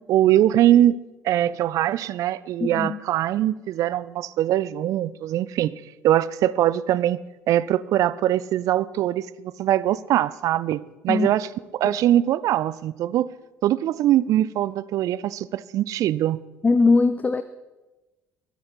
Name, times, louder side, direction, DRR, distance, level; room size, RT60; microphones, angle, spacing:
voice 1, 0.1-1.0 1.2-5.7 6.0-7.2 7.5-13.3 13.6-16.4, right 12 dB, 50° right, 0.5 m, -22 dB
voice 2, 2.6-3.0 11.1-11.3 16.6-17.4, left 3 dB, 20° left, 0.7 m, -20 dB
21.5 x 9.4 x 4.2 m
figure-of-eight pair, 55°, 7 cm